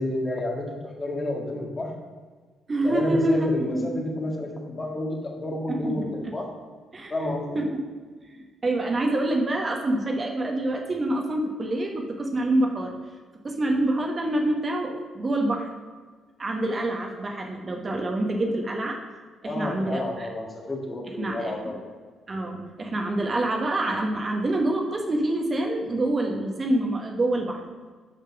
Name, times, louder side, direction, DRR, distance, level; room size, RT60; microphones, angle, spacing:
voice 1, 0.0-1.9 2.8-6.5 7.1-7.6 19.4-21.8, left 1 dB, 25° left, 0 dB, 1.8 m, -30 dB
voice 2, 2.7-4.0 5.7-6.3 6.9-7.8 8.3-12.9 13.4-15.7 16.4-19.0 19.4-20.3 21.2-21.7 22.3-27.6, right 1 dB, 35° right, 2 dB, 1.2 m, -26 dB
6.9 x 5.8 x 5.9 m, 1.4 s
cardioid pair, 90°, 0 cm